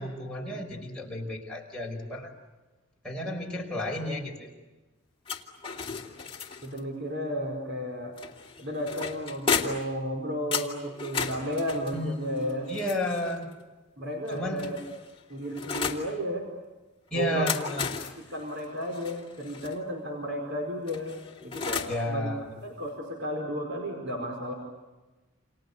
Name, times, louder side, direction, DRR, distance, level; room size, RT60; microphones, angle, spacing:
voice 1, 0.0-2.3 3.0-4.5 11.9-13.5 14.3-14.7 17.1-17.9 21.9-22.5, left 1 dB, 5° left, -2 dB, 5.4 m, -32 dB
sound 1, 5.3-6.8 8.2-10.0 10.5-13.4 14.3-16.1 17.2-19.8 20.9-22.0, left 6 dB, 25° left, 2.5 m, -34 dB
voice 2, 6.6-8.2 8.6-12.7 14.0-14.8 15.3-16.4 17.1-17.5 18.3-21.1 21.4-22.3 22.6-24.5, equal, 55° right, 2 dB, 5.0 m, -33 dB
29.5 x 28.5 x 6.9 m, 1.2 s
head